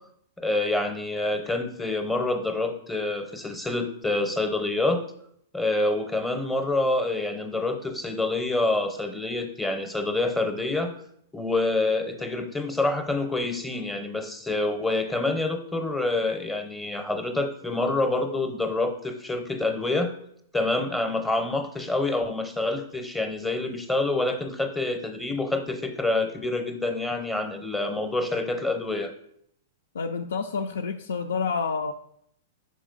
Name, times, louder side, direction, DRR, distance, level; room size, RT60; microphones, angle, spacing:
voice 1, 0.4-5.0 5.5-10.9 11.3-20.1 20.5-29.1, left 2 dB, 5° left, 5 dB, 0.6 m, -27 dB
voice 2, 29.9-31.9, left 5 dB, 90° left, 3 dB, 0.4 m, -28 dB
5.1 x 4.8 x 3.8 m, 0.70 s
hypercardioid pair, 140°, 0 cm